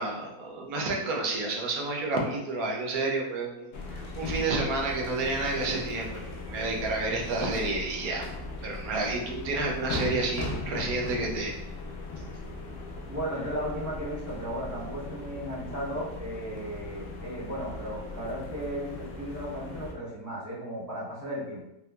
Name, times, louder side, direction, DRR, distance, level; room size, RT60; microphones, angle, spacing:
voice 1, 0.0-6.2 6.5-8.2 8.6-11.5, right 2 dB, 70° right, 0 dB, 1.1 m, -30 dB
sound 1, 3.7-19.9, left 2 dB, 65° left, 0.9 m, -38 dB
voice 2, 13.1-21.6, equal, 20° right, -7 dB, 0.5 m, -35 dB
3.7 x 2.6 x 2.2 m, 0.86 s
omnidirectional pair, 1.7 m